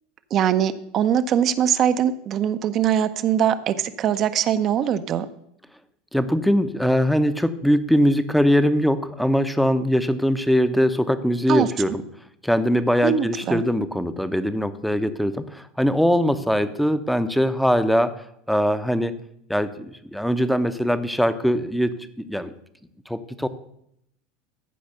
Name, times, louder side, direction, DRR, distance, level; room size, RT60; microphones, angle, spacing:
voice 1, 0.3-5.3 11.5-11.9 13.0-13.6, right 9 dB, 40° right, 10 dB, 0.7 m, -22 dB
voice 2, 6.1-12.0 12.4-19.1 19.5-22.5 23.1-23.5, equal, ahead, 11 dB, 0.9 m, -21 dB
14.5 x 5.2 x 6.7 m, 0.75 s
figure-of-eight pair, 80°, 0 cm